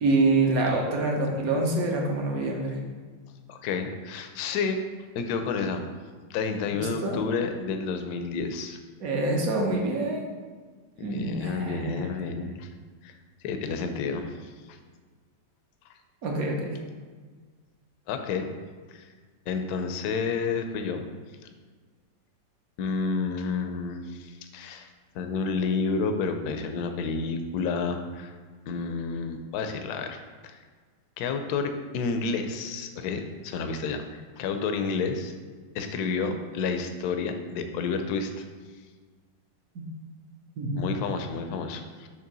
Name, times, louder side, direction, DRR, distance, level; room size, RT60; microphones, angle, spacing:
voice 1, 0.0-2.8 6.7-7.2 9.0-10.2 11.0-12.1 16.2-16.8 39.7-39.8 40.6-40.9, right 2 dB, 55° right, 0 dB, 1.3 m, -26 dB
voice 2, 3.5-4.8 5.1-5.9 6.3-8.8 11.0-12.7 13.0-13.2 13.4-14.8 18.1-18.5 18.9-19.1 19.5-21.1 22.8-24.9 25.1-28.3 28.7-30.6 31.2-35.3 35.7-38.5 40.8-42.1, left 4 dB, 65° left, 6 dB, 1.0 m, -30 dB
6.6 x 3.2 x 6.0 m, 1.5 s
omnidirectional pair, 2.0 m